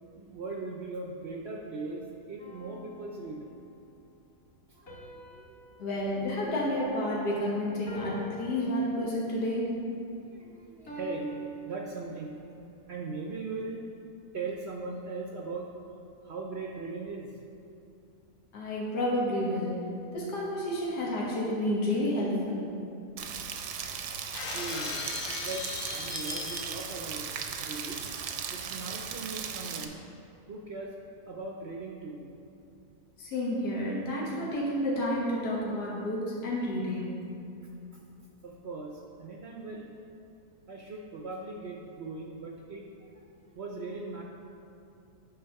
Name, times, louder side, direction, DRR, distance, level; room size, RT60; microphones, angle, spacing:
voice 1, 0.0-3.5 4.7-5.7 10.2-12.3 12.9-13.8 14.3-15.7 16.2-17.4 24.5-25.0 25.4-27.3 27.6-28.0 28.5-30.0 30.5-30.9 31.3-32.3 38.4-39.9 40.7-44.2, right 3 dB, 60° right, -1 dB, 0.7 m, -39 dB
sound 1, 2.4-3.8 4.9-7.3 7.9-9.5 10.9-12.5, right 1 dB, 45° left, 1.9 m, -46 dB
voice 2, 5.8-9.7 18.5-19.8 20.1-22.6 33.2-37.1, left 1 dB, 85° left, -5 dB, 1.8 m, -30 dB
Rain, 23.2-29.8, right 7 dB, 80° right, 1.2 m, -37 dB
Shatter, 24.3-27.1, left 5 dB, 65° left, 0.9 m, -38 dB
9.1 x 4.0 x 5.7 m, 2.7 s
omnidirectional pair, 1.7 m